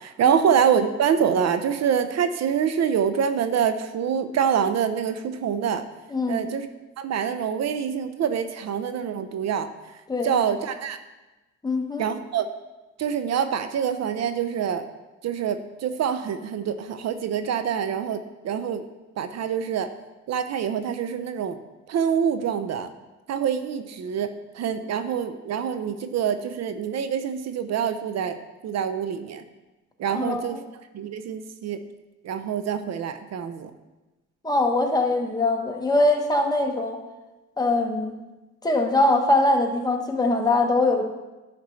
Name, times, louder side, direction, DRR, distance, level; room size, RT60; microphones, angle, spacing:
voice 1, 0.0-5.8 6.3-6.7 7.0-9.7 10.2-11.0 12.0-12.5 13.0-14.9 15.2-18.9 19.2-19.9 20.3-21.6 21.9-22.9 23.3-28.4 28.6-29.4 30.0-30.6 30.9-31.8 32.2-33.7, right 8 dB, 60° right, 10 dB, 0.6 m, -25 dB
voice 2, 6.1-6.5 10.1-10.4 11.6-12.0 30.1-30.6 34.4-37.0 37.6-38.1 38.6-41.0, left 2 dB, 15° left, 2 dB, 1.1 m, -22 dB
9.7 x 5.9 x 3.2 m, 1.1 s
cardioid pair, 90°, 30 cm